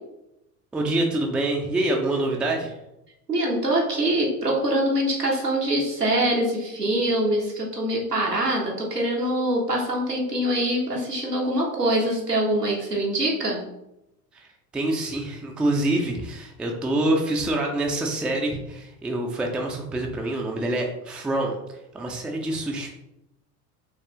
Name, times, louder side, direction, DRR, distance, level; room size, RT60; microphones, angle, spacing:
voice 1, 0.7-2.7 14.3-14.5 14.7-21.6 21.9-22.9, right 1 dB, ahead, 1 dB, 0.4 m, -26 dB
voice 2, 3.3-13.6, right 1 dB, 90° right, -2 dB, 1.1 m, -24 dB
5.6 x 3.2 x 2.9 m, 0.88 s
figure-of-eight pair, 70°, 46 cm